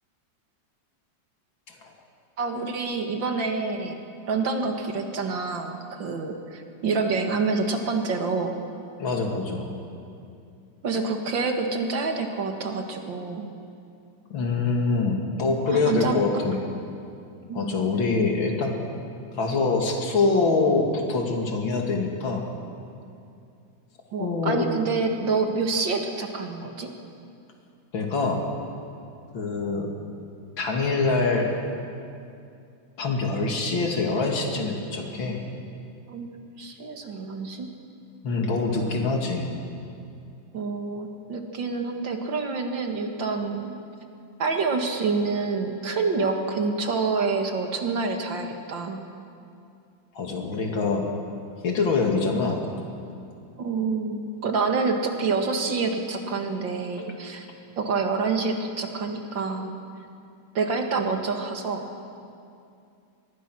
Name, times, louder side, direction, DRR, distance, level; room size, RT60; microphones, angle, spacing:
voice 1, 2.4-8.5 10.8-13.5 15.7-16.4 17.5-17.7 24.1-26.9 36.1-36.3 36.6-37.7 40.5-43.7 44.4-49.0 53.6-57.5 57.8-59.7 60.5-61.9, right 4 dB, 75° right, 4 dB, 2.6 m, -27 dB
voice 2, 9.0-9.7 14.3-16.6 17.5-18.8 19.3-22.5 24.2-24.6 27.9-28.4 29.3-29.9 30.6-31.5 33.0-35.4 38.2-39.5 50.1-51.1 51.6-52.6, left 3 dB, 85° left, 1 dB, 3.1 m, -24 dB
25.0 x 21.5 x 6.3 m, 2.5 s
omnidirectional pair, 2.1 m